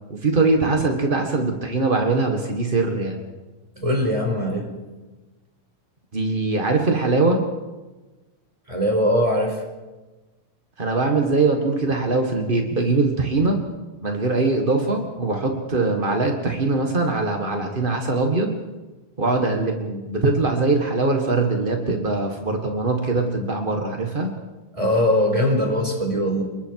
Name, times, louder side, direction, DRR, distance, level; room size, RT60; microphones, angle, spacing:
voice 1, 0.1-3.2 6.1-7.4 10.8-13.6 14.0-18.6 19.2-24.3, right 3 dB, 40° right, 3 dB, 0.7 m, -22 dB
voice 2, 3.8-4.7 8.7-9.6 24.7-26.4, left 1 dB, 10° right, 1 dB, 4.7 m, -21 dB
29.5 x 21.5 x 4.8 m, 1.2 s
omnidirectional pair, 4.1 m